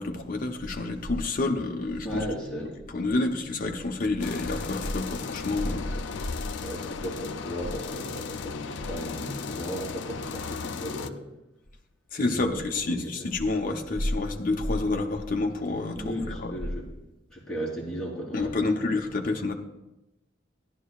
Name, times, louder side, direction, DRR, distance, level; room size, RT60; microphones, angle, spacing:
voice 1, 0.0-2.2 2.9-5.9 12.1-16.5 18.3-19.5, left 2 dB, 50° left, 2 dB, 0.8 m, -28 dB
voice 2, 2.0-2.8 5.9-6.1 6.6-11.3 12.2-12.6 12.9-13.3 16.0-16.8 17.3-19.2, equal, 5° left, -8 dB, 3.5 m, -36 dB
sound 1, 4.2-11.1, left 5 dB, 70° left, 0.4 m, -36 dB
14.5 x 11.0 x 2.4 m, 0.93 s
head